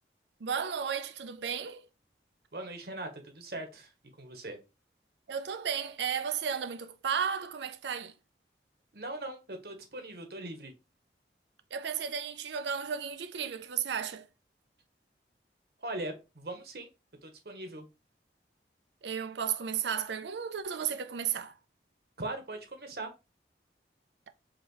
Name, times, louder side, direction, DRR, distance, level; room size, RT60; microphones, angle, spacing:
voice 1, 0.4-1.9 5.3-8.1 11.7-14.3 19.0-21.5, right 7 dB, 85° right, 0.5 m, -34 dB
voice 2, 2.5-3.1 3.3-3.9 4.2-4.6 8.9-10.7 15.8-16.9 17.2-17.9 22.2-23.1, right 2 dB, 60° right, 1.1 m, -40 dB
5.0 x 2.9 x 3.1 m
head